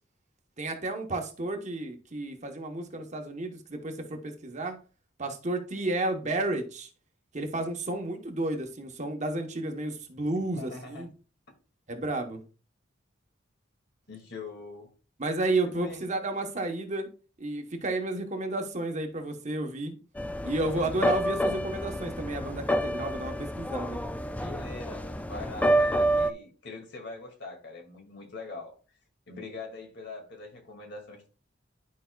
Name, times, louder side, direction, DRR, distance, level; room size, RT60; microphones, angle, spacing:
voice 1, 0.6-4.8 5.2-6.9 7.3-11.1 11.9-12.4 15.2-17.1 17.4-20.0 20.4-24.2, right 2 dB, 35° right, 1.1 m, -32 dB
voice 2, 10.3-11.1 14.1-14.9 15.6-16.0 24.4-28.7 29.3-31.3, left 3 dB, 60° left, 2.3 m, -42 dB
sound 1, 20.2-26.3, right 1 dB, 5° left, 0.3 m, -28 dB
11.5 x 5.2 x 2.3 m
head